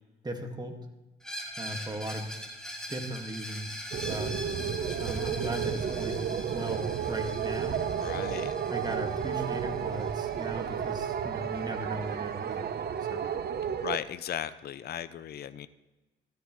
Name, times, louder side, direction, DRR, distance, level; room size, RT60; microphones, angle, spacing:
voice 1, 0.2-0.8 1.6-2.3 2.9-4.4 5.0-6.3 6.5-7.8 8.7-12.7 13.1-13.3, right 1 dB, 20° right, 4 dB, 1.9 m, -37 dB
Screech, 1.2-10.9, equal, 5° left, 3.2 m, -42 dB
sound 1, 3.9-14.0, right 8 dB, 55° right, 0.9 m, -32 dB
voice 2, 8.0-8.6 13.8-15.7, left 10 dB, 55° left, 14 dB, 0.5 m, -36 dB
15.0 x 12.5 x 3.1 m, 1.1 s
cardioid pair, 90°, 20 cm